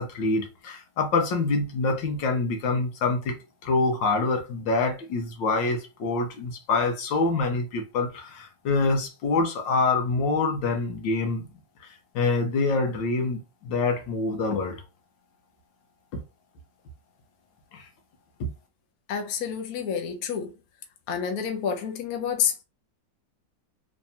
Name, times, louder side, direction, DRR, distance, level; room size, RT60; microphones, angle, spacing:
voice 1, 0.0-3.4 3.6-11.5 12.1-14.8 16.1-16.2 17.7-17.9 18.4-18.5, left 3 dB, 75° left, 1.6 m, -26 dB
voice 2, 19.1-20.5 21.1-22.6, left 7 dB, 60° left, 1.1 m, -29 dB
3.4 x 3.2 x 2.7 m
omnidirectional pair, 2.1 m